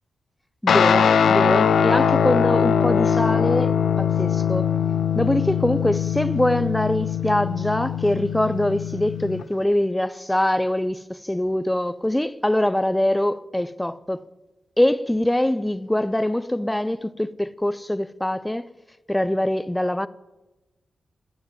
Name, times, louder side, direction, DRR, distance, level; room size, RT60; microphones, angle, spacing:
voice 1, 0.6-4.8 5.1-14.3 14.8-18.7 19.1-20.1, left 1 dB, 5° left, 0.4 m, -23 dB
Guitar, 0.7-9.4, left 7 dB, 80° left, 0.6 m, -21 dB
14.5 x 5.9 x 9.4 m
wide cardioid pair, 140°, 0 cm